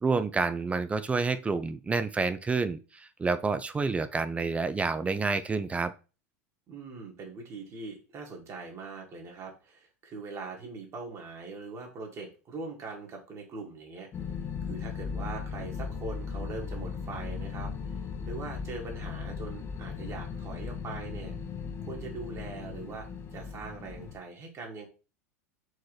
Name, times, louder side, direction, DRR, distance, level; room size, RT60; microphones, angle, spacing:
voice 1, 0.0-5.9, right 4 dB, 15° right, 12 dB, 0.3 m, -29 dB
voice 2, 6.7-14.1 14.7-17.7 18.2-21.3 21.8-23.1 23.3-24.9, right 3 dB, 35° right, 1 dB, 1.6 m, -41 dB
sound 1, 14.1-24.2, left 6 dB, 30° left, 0.7 m, -37 dB
4.6 x 3.0 x 3.1 m, 0.33 s
hypercardioid pair, 85°, 8 cm